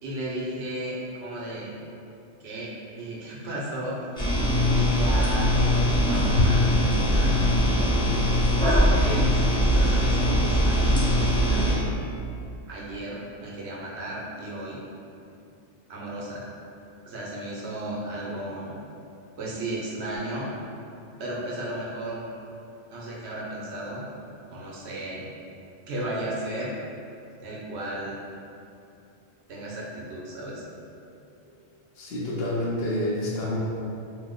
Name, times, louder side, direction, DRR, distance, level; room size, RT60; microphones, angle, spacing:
voice 1, 0.0-1.7 2.4-4.3 4.7-8.0 8.6-9.3 9.7-11.9 12.7-14.8 15.9-16.4 17.1-18.7 19.4-20.5 21.2-22.3 22.9-24.1 24.5-25.2 25.9-26.7 27.4-28.2 29.5-30.6, right 1 dB, 80° right, -5 dB, 0.9 m, -34 dB
sound 1, 4.2-11.7, left 1 dB, 5° left, 0.5 m, -21 dB
voice 2, 32.0-33.6, left 1 dB, 70° left, -4 dB, 0.8 m, -28 dB
2.8 x 2.0 x 3.6 m, 2.6 s
omnidirectional pair, 1.1 m